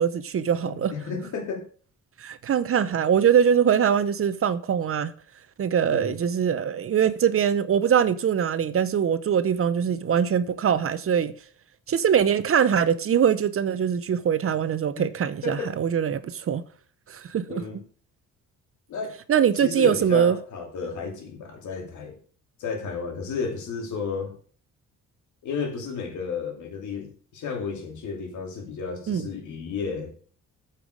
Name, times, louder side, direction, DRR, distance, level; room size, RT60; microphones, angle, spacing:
voice 1, 0.0-0.9 2.2-5.1 5.6-11.3 11.9-16.6 17.1-17.6 19.3-20.4 29.1-29.3, right 8 dB, 45° right, 0.8 m, -22 dB
voice 2, 0.6-1.7 5.9-6.2 15.0-15.1 15.4-15.8 17.5-17.8 18.9-19.2 19.6-22.2 22.6-24.4 25.4-30.1, left 5 dB, 75° left, 2.7 m, -32 dB
8.6 x 5.9 x 6.4 m
cardioid pair, 90°, 30 cm